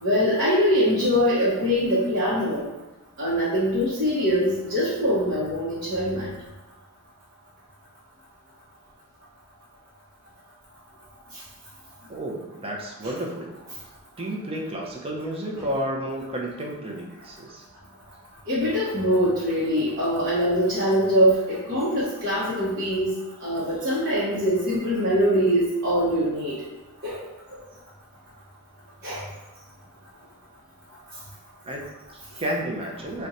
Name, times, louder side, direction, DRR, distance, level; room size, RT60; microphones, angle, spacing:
voice 1, 0.0-2.7 3.2-6.3 15.5-15.6 18.5-26.6 27.0-27.2 29.0-29.2, equal, 50° right, -10 dB, 0.8 m, -23 dB
voice 2, 12.1-13.6 14.2-17.6 31.6-33.3, right 1 dB, 25° right, 0 dB, 0.5 m, -31 dB
2.5 x 2.2 x 4.0 m, 1.1 s
head